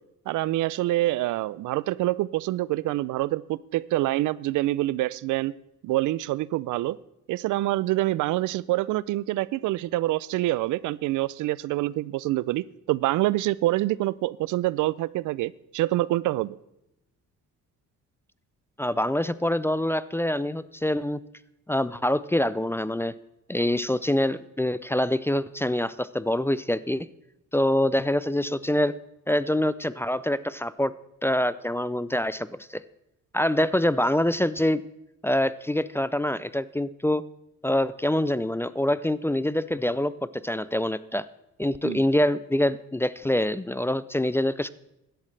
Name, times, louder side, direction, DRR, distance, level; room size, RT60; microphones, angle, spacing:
voice 1, 0.3-5.5 5.8-7.0 7.3-16.6 41.8-42.0, right 16 dB, 80° right, 21 dB, 0.4 m, -26 dB
voice 2, 18.8-21.2 21.7-23.1 23.5-27.1 27.5-28.9 29.3-30.9 31.2-32.8 33.3-34.8 35.2-37.2 37.6-40.1 40.4-41.3 41.6-44.7, left 1 dB, 10° left, 16 dB, 0.4 m, -25 dB
16.0 x 11.5 x 3.3 m, 0.87 s
cardioid pair, 90°, 30 cm